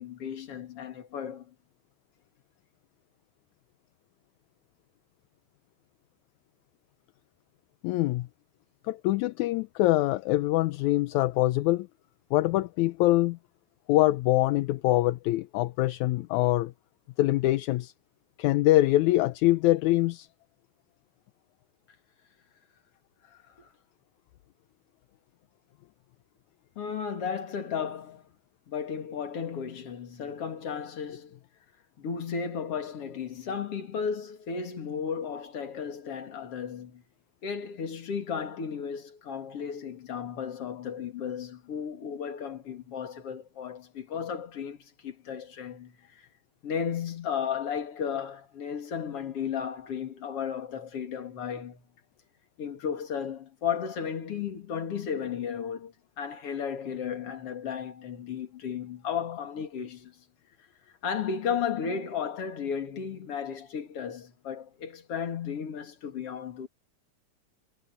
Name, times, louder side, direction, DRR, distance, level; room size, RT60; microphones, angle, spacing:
voice 1, 0.0-1.5 23.3-23.7 26.8-28.3 28.7-31.4 32.0-37.0 37.4-46.2 46.6-51.8 52.6-60.1 61.0-66.7, left 7 dB, 50° left, 3.2 m, -34 dB
voice 2, 7.8-8.3 8.9-11.9 12.3-13.4 13.9-16.7 17.2-17.9 18.4-20.3, left 17 dB, 80° left, 2.0 m, -24 dB
omnidirectional pair, 3.4 m